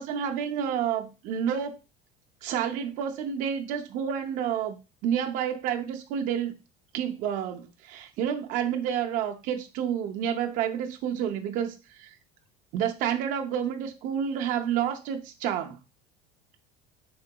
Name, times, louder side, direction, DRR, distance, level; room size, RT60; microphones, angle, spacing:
voice 1, 0.0-1.8 2.4-4.8 5.0-6.5 6.9-12.1 12.7-15.8, right 8 dB, 45° right, 0.5 m, -29 dB
3.8 x 3.6 x 2.2 m
cardioid pair, 175°, 19 cm